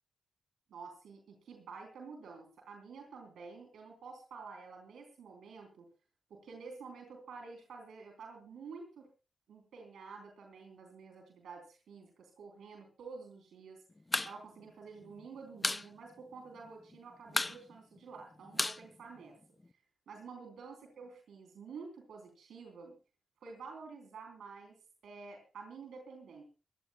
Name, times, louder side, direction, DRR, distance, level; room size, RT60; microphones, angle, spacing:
voice 1, 0.7-5.9 6.3-9.1 9.5-13.8 14.2-19.4 20.1-23.0 23.4-24.8 25.0-26.4, right 5 dB, 80° right, 3 dB, 3.5 m, -50 dB
sound 1, 14.0-14.3 14.6-14.7 15.0-15.9 16.2-16.3 16.6-17.0 17.3-19.7, left 2 dB, 25° left, 0.6 m, -34 dB
22.5 x 13.5 x 2.3 m, 0.34 s
supercardioid pair, 45°, 0 cm